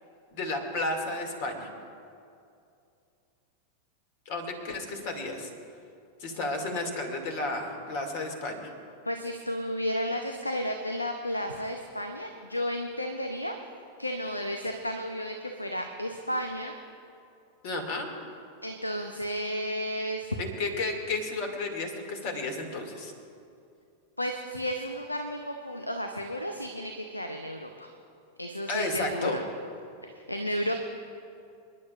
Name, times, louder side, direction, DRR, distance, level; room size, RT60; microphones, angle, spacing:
voice 1, 0.3-1.7 4.3-5.5 6.2-8.7 17.6-18.1 20.4-23.1 28.7-29.4, left 2 dB, 50° left, 3 dB, 2.3 m, -32 dB
voice 2, 9.0-13.5 14.0-16.7 18.6-20.4 24.2-27.9 28.4-29.4 30.0-30.8, equal, 85° left, 5 dB, 0.8 m, -33 dB
28.5 x 11.0 x 2.5 m, 2.5 s
figure-of-eight pair, 90°, 0 cm